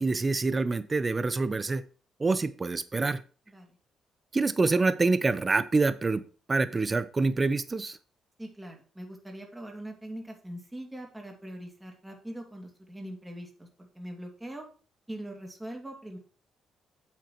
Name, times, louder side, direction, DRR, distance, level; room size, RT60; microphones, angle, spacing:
voice 1, 0.0-1.8 2.2-3.2 4.3-6.2 6.5-8.0, right 3 dB, 25° right, 13 dB, 0.8 m, -26 dB
voice 2, 8.4-14.7 15.1-16.2, right 1 dB, 10° right, 1 dB, 2.4 m, -42 dB
8.9 x 7.5 x 3.1 m, 0.38 s
cardioid pair, 90°, 0 cm